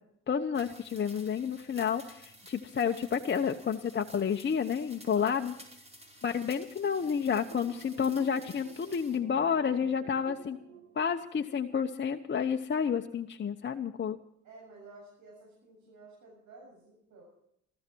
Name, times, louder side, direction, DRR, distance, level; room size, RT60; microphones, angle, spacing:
voice 1, 0.3-5.5 6.2-10.6 10.9-14.2, left 7 dB, 35° left, 4 dB, 1.0 m, -30 dB
sound 1, 0.5-9.2, right 1 dB, 20° right, 4.7 m, -54 dB
voice 2, 5.1-5.5 14.4-17.2, right 3 dB, 70° right, -2 dB, 7.9 m, -53 dB
sound 2, 6.8-12.2, right 8 dB, 85° right, 2.3 m, -52 dB
21.0 x 14.0 x 4.6 m, 0.75 s
cardioid pair, 90°, 30 cm